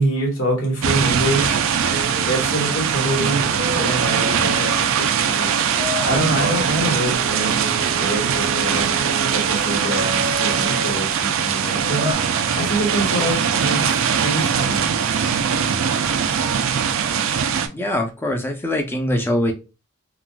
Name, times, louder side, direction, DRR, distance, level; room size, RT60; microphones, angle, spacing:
voice 1, 0.0-1.6 2.2-5.7 6.0-8.9 9.3-12.1 12.6-14.9, right 1 dB, 90° left, -1 dB, 1.6 m, -25 dB
sound 1, 0.8-17.7, right 7 dB, 70° right, 0.4 m, -21 dB
sound 2, 1.9-2.5 3.4-5.0 5.8-11.0 11.8-12.1, left 1 dB, 30° right, 0.6 m, -32 dB
voice 2, 17.7-19.5, left 1 dB, 10° left, 3 dB, 0.5 m, -22 dB
3.9 x 2.4 x 2.2 m, 0.29 s
head